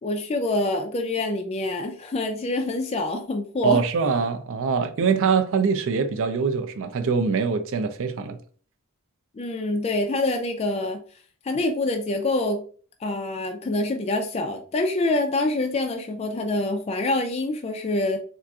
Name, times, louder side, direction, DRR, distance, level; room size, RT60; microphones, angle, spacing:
voice 1, 0.0-3.8 9.3-11.0 11.4-12.6 13.0-18.2, left 2 dB, 30° left, 0.3 m, -26 dB
voice 2, 3.6-8.4, right 5 dB, 60° right, 0.4 m, -23 dB
3.9 x 2.4 x 2.3 m
head